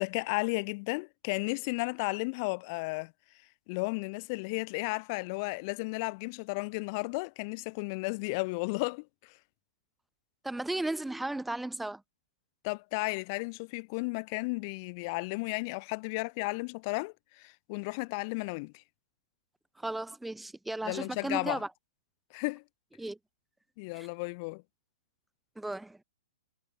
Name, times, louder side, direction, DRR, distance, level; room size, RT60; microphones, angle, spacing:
voice 1, 0.0-3.1 3.7-9.3 12.6-18.8 20.8-21.6 22.3-22.6 23.8-24.6, left 29 dB, 45° left, 0.7 m, -34 dB
voice 2, 10.4-12.0 19.8-21.7 23.0-23.2 23.9-24.1 25.6-26.0, right 2 dB, 5° right, 0.8 m, -35 dB
hypercardioid pair, 135°, 3 cm